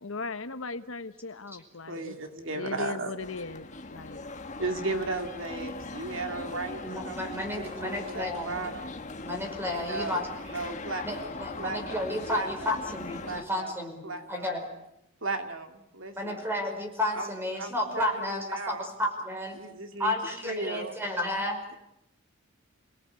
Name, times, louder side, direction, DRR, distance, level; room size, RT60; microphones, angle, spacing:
voice 1, 0.0-2.2 2.5-4.3 4.9-5.1, left 4 dB, 75° left, 11 dB, 1.2 m, -38 dB
voice 2, 1.9-3.1 4.6-8.9 9.7-10.2 10.5-11.3 11.6-12.7 13.2-13.7 14.0-14.5 15.2-16.4 17.1-17.3 17.6-18.9 19.6-20.1 20.4-21.0, right 3 dB, 70° right, 5 dB, 2.6 m, -36 dB
sound 1, 3.2-13.4, left 3 dB, 35° left, 1.5 m, -40 dB
voice 3, 6.8-8.8 9.2-10.3 11.0-14.7 16.2-19.6 20.0-21.6, left 1 dB, 10° right, 4 dB, 5.3 m, -32 dB
28.5 x 18.0 x 8.5 m, 0.81 s
head